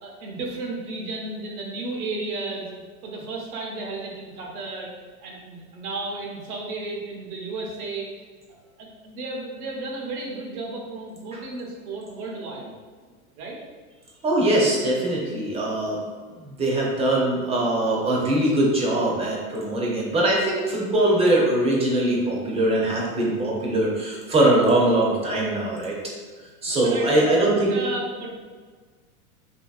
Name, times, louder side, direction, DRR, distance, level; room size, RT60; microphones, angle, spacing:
voice 1, 0.0-2.7 3.0-4.9 5.2-8.1 8.8-12.8 13.4-13.6 26.7-28.3, right 2 dB, 80° right, -1 dB, 0.8 m, -33 dB
voice 2, 14.2-16.0 16.4-26.0 26.6-27.7, right 1 dB, 15° right, -3 dB, 0.5 m, -22 dB
2.8 x 2.7 x 2.3 m, 1.5 s
hypercardioid pair, 105°, 43 cm